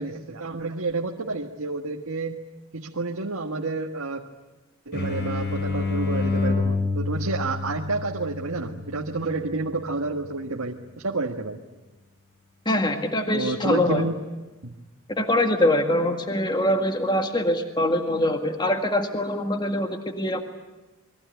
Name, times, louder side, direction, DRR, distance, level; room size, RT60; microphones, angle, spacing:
voice 1, 0.0-2.4 2.7-4.3 4.8-11.6 13.3-14.1 14.6-14.7, right 3 dB, 85° right, 1 dB, 1.7 m, -29 dB
sound 1, 4.9-10.4, left 3 dB, 50° left, 4.9 m, -29 dB
voice 2, 12.7-14.1 15.2-20.4, left 1 dB, 20° left, 5 dB, 1.9 m, -23 dB
28.5 x 22.0 x 9.1 m, 1.1 s
head